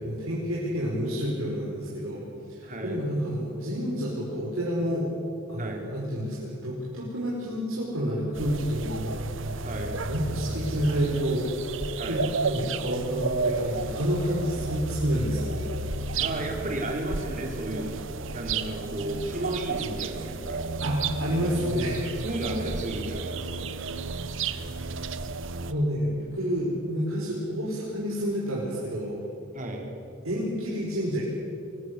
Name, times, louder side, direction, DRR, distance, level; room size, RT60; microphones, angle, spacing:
voice 1, 0.0-2.2 2.5-5.1 5.5-9.7 10.1-11.5 12.1-15.6 20.8-22.1 24.4-24.7 25.7-29.2 30.2-31.3, equal, 80° right, -6 dB, 5.0 m, -29 dB
voice 2, 2.6-3.0 5.6-5.8 9.6-9.9 12.0-12.2 16.2-18.0 18.3-20.6 22.2-23.7 29.5-29.9, right 1 dB, 35° right, 1 dB, 3.9 m, -33 dB
sound 1, 8.3-25.7, right 4 dB, 65° right, 1.0 m, -32 dB
23.5 x 19.5 x 8.3 m, 2.6 s
head